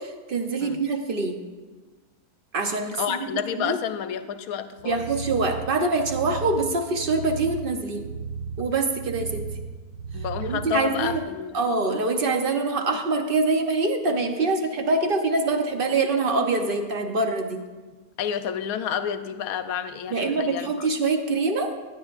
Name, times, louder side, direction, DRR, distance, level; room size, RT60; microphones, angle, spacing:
voice 1, 0.0-1.4 2.5-3.8 4.8-8.0 8.6-9.5 10.4-11.2 11.5-17.6 20.1-21.7, right 3 dB, 45° right, 5 dB, 0.7 m, -25 dB
voice 2, 3.0-5.0 10.1-11.6 18.2-20.9, left 8 dB, 70° left, 10 dB, 1.0 m, -30 dB
sound 1, 4.8-11.2, right 5 dB, 90° right, 1.2 m, -35 dB
16.0 x 9.3 x 2.5 m, 1.3 s
omnidirectional pair, 1.7 m